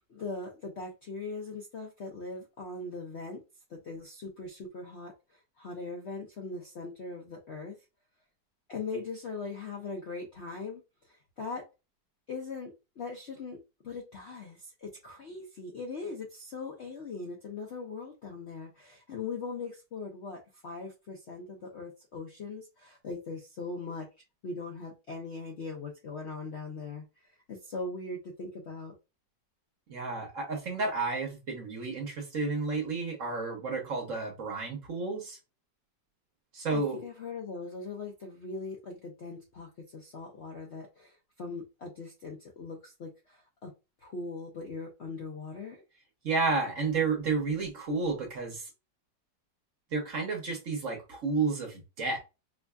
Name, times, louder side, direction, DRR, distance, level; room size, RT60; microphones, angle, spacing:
voice 1, 0.0-3.4 3.7-5.1 5.6-7.8 8.7-10.8 11.1-11.7 12.3-13.6 13.8-24.1 24.4-28.9 36.7-43.7 44.0-45.8, left 3 dB, 60° left, 1 dB, 0.7 m, -40 dB
voice 2, 29.9-35.4 36.5-37.0 46.2-48.7 49.9-52.2, right 4 dB, 50° right, 2 dB, 1.1 m, -31 dB
4.7 x 2.6 x 2.2 m, 0.27 s
omnidirectional pair, 1.9 m